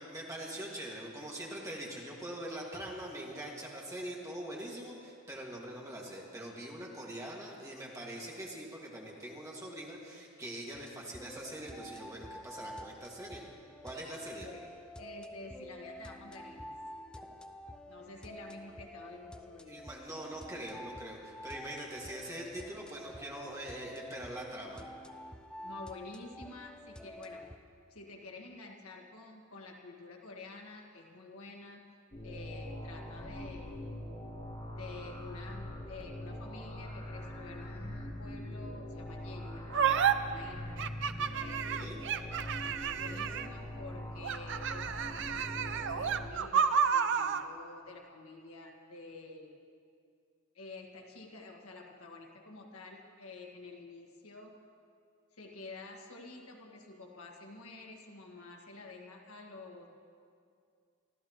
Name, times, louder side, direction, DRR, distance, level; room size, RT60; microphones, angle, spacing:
voice 1, 0.0-13.5 13.8-14.5 19.7-24.8 41.6-42.0, right 1 dB, 15° right, -3 dB, 2.1 m, -43 dB
sound 1, 10.7-27.6, equal, 5° left, 0.4 m, -49 dB
voice 2, 14.4-14.7 15.0-16.7 17.9-19.9 25.6-27.5 27.9-31.9 32.2-34.0 34.8-40.8 41.2-41.6 42.8-49.5 50.5-54.6 55.3-59.9, left 3 dB, 80° left, 1 dB, 1.7 m, -49 dB
sound 2, 32.1-46.3, left 1 dB, 30° left, 1.6 m, -43 dB
sound 3, 39.7-40.1 40.8-43.6 44.2-47.4, right 7 dB, 60° right, 0.5 m, -30 dB
24.5 x 14.5 x 3.1 m, 2.3 s
head